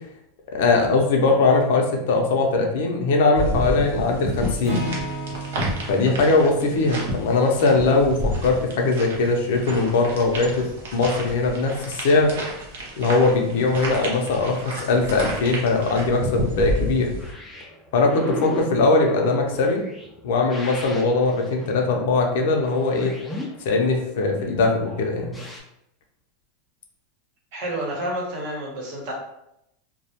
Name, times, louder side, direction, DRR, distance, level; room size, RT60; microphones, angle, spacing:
voice 1, 0.5-4.8 5.9-12.3 13.0-17.1 17.9-19.8 20.2-23.1 23.6-25.4, left 3 dB, 70° left, 2 dB, 0.5 m, -20 dB
sound 1, 3.3-17.3, equal, 85° right, 0.7 m, -31 dB
Acoustic guitar / Strum, 4.6-8.7, equal, 15° right, 0.7 m, -34 dB
sound 2, 17.2-25.6, left 1 dB, 5° left, 0.3 m, -36 dB
voice 2, 27.5-29.1, right 1 dB, 55° right, -2 dB, 0.8 m, -29 dB
2.2 x 2.1 x 2.8 m, 0.81 s
supercardioid pair, 165°, 0 cm